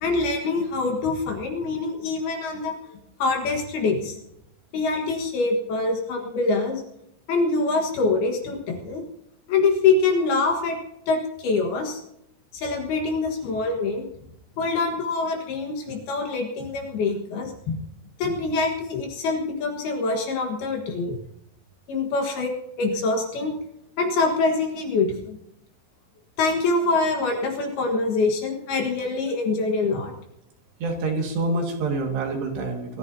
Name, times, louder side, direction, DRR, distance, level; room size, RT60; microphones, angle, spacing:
voice 1, 0.0-2.8 3.2-4.2 4.7-6.8 7.3-9.0 9.5-10.8 11.1-12.0 12.5-14.1 14.6-17.8 18.2-21.2 21.9-22.5 22.8-23.5 24.0-25.4 26.4-30.1, left 3 dB, 65° left, 2 dB, 3.1 m, -24 dB
voice 2, 30.8-33.0, right 3 dB, 65° right, 1 dB, 3.9 m, -26 dB
24.5 x 14.5 x 2.8 m, 0.80 s
omnidirectional pair, 5.5 m